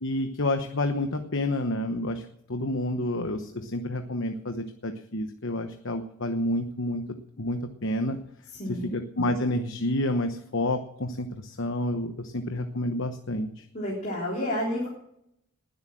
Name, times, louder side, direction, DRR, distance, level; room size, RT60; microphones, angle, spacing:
voice 1, 0.0-7.0 7.4-8.2 8.7-13.7, left 1 dB, 60° left, 7 dB, 1.1 m, -29 dB
voice 2, 8.5-8.9 13.7-14.9, left 1 dB, 35° left, -4 dB, 3.6 m, -30 dB
20.0 x 8.1 x 7.5 m, 0.76 s
head